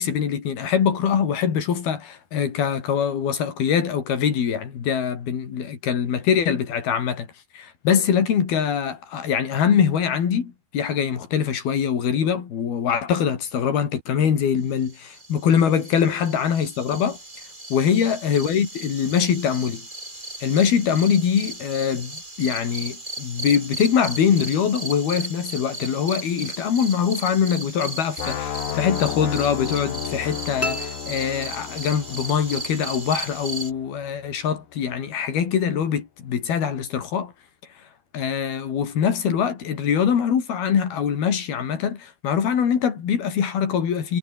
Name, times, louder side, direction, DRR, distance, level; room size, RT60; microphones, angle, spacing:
voice 1, 0.0-7.3 7.5-17.2 17.7-19.9 20.4-22.1 22.4-37.3 38.1-44.2, left 7 dB, 80° left, 5.3 m, -23 dB
sound 1, 14.8-33.7, right 2 dB, 15° right, 3.5 m, -36 dB
sound 2, 28.2-34.1, left 10 dB, 60° left, 2.8 m, -33 dB
sound 3, 30.6-32.2, left 1 dB, 10° left, 0.8 m, -33 dB
omnidirectional pair, 4.3 m